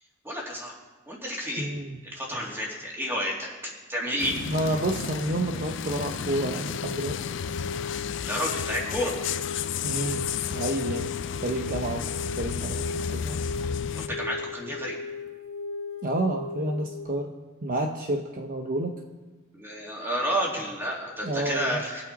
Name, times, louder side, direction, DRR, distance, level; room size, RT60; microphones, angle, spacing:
voice 1, 0.2-0.7 1.1-1.7 2.0-4.4 4.7-4.8 8.3-9.2 14.0-15.0 19.5-22.0, equal, 10° right, -3 dB, 2.6 m, -30 dB
voice 2, 1.6-2.0 4.5-7.2 9.8-11.1 11.4-12.1 12.4-13.4 16.0-17.3 17.6-19.0 21.2-21.8, right 1 dB, 45° right, 3 dB, 0.8 m, -30 dB
sound 1, 4.2-14.1, left 7 dB, 65° left, 0.4 m, -33 dB
sound 2, 6.6-17.1, left 4 dB, 85° left, 1.2 m, -36 dB
21.5 x 8.7 x 4.1 m, 1.2 s
head